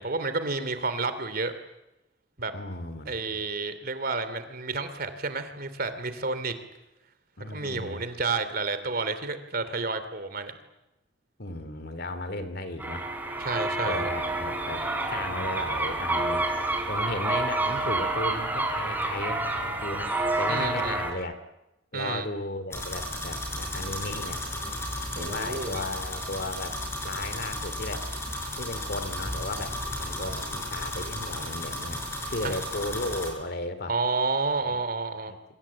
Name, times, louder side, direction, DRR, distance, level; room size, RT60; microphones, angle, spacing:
voice 1, 0.0-1.5 2.4-2.5 3.1-6.5 7.5-10.5 13.4-14.1 20.5-21.0 21.9-22.3 25.2-25.8 32.4-32.6 33.9-35.3, right 3 dB, 50° right, 11 dB, 2.8 m, -30 dB
voice 2, 2.5-3.4 7.4-8.0 11.4-13.1 13.8-16.4 16.9-21.3 21.9-24.4 25.1-26.8 27.0-28.1 28.6-33.9 34.6-34.8 35.3-35.4, left 2 dB, 55° left, 11 dB, 2.6 m, -35 dB
sound 1, 12.8-21.1, right 2 dB, 10° right, 4.2 m, -28 dB
sound 2, 22.7-33.3, left 1 dB, 15° left, 7.6 m, -34 dB
27.5 x 25.0 x 8.6 m, 0.93 s
head